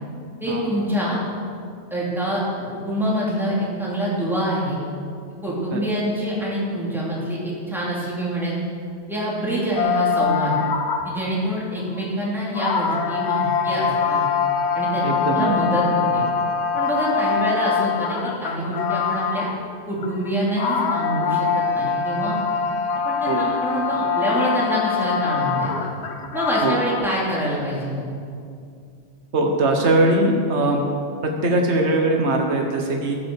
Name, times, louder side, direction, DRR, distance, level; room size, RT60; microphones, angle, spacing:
voice 1, 0.4-1.2 1.9-4.8 5.4-8.5 9.1-10.5 11.0-14.2 14.7-16.2 16.7-19.5 19.9-22.4 23.1-25.9 26.3-28.0, right 1 dB, ahead, -7 dB, 3.5 m, -26 dB
sound 1, 9.8-11.3 12.0-12.1 12.5-19.7 20.0-27.1, left 6 dB, 65° left, 1.1 m, -24 dB
voice 2, 15.0-15.5 23.3-23.4 26.6-26.8 29.3-30.8 31.2-33.2, right 2 dB, 65° right, 2 dB, 1.6 m, -20 dB
15.5 x 7.6 x 6.6 m, 2.3 s
omnidirectional pair, 1.2 m